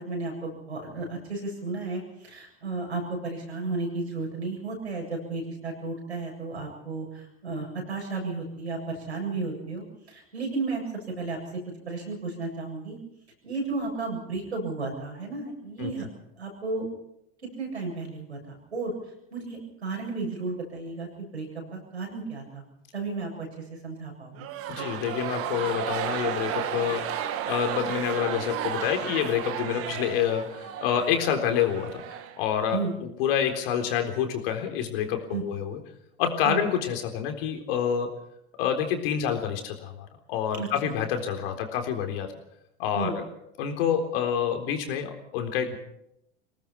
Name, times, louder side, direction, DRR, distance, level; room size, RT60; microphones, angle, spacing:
voice 1, 0.0-11.4 11.9-13.0 13.4-16.1 16.4-16.8 17.4-18.9 19.3-22.6 22.9-24.8 32.7-32.9 35.3-35.4 36.4-36.6 40.5-40.9 42.9-43.2, right 3 dB, 90° right, 1 dB, 7.9 m, -33 dB
sound 1, 24.3-32.8, right 10 dB, 45° right, 2.0 m, -33 dB
voice 2, 24.7-32.0 32.4-32.8 33.2-35.8 36.2-38.1 38.6-42.4 42.8-43.2 43.6-45.8, left 8 dB, 60° left, 5 dB, 3.9 m, -28 dB
24.0 x 19.0 x 5.9 m, 0.81 s
hypercardioid pair, 85°, 32 cm